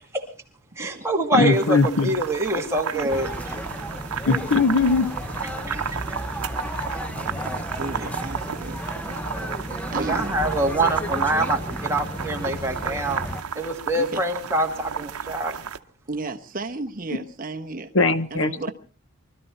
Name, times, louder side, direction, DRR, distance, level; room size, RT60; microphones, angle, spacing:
voice 1, 0.8-3.3 5.7-6.2 10.0-13.2 13.6-15.6, right 1 dB, 10° right, 2.2 m, -25 dB
voice 2, 1.3-2.1 4.3-5.1 17.9-18.7, left 3 dB, 60° left, 1.0 m, -20 dB
sound 1, 1.5-15.8, right 7 dB, 80° right, 0.8 m, -33 dB
sound 2, 3.1-13.4, equal, 5° left, 0.8 m, -33 dB
voice 3, 7.3-8.8 9.9-10.3 13.9-14.2 16.1-17.9 18.3-18.7, right 2 dB, 40° right, 1.0 m, -33 dB
24.0 x 13.0 x 4.3 m
head